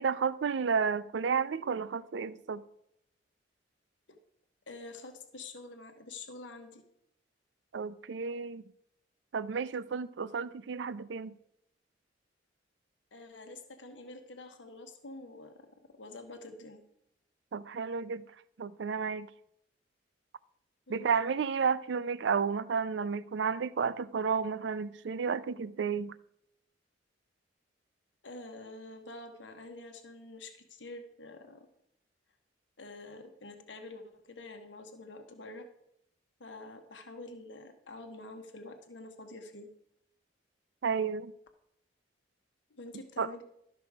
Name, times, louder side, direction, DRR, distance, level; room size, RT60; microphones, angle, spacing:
voice 1, 0.0-2.6 7.7-8.7 9.3-11.3 17.5-18.2 18.6-19.3 20.9-26.1 40.8-41.3 43.2-43.3, right 6 dB, 70° right, 0.4 m, -32 dB
voice 2, 4.7-6.8 13.1-15.5 16.0-16.8 20.9-21.1 28.2-31.7 32.8-35.6 36.4-39.7 42.7-43.4, left 2 dB, 85° left, 1.1 m, -47 dB
12.5 x 6.1 x 4.7 m
head